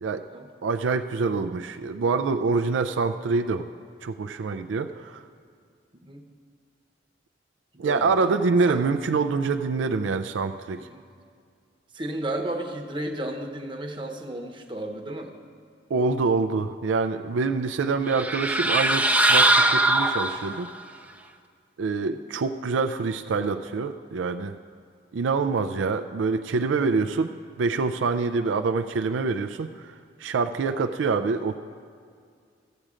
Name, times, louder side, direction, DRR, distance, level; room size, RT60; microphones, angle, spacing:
voice 1, 0.6-3.7 4.0-5.2 7.8-10.8 15.9-20.7 21.8-24.6 25.1-29.9 30.2-31.6, right 4 dB, 80° right, 8 dB, 0.4 m, -26 dB
voice 2, 7.8-8.4 8.7-8.8 10.8-11.0 11.9-15.4 22.0-22.2, right 1 dB, 25° right, 3 dB, 0.9 m, -33 dB
sound 1, 18.1-20.7, right 1 dB, 10° right, 0.5 m, -21 dB
14.5 x 7.5 x 5.0 m, 2.2 s
head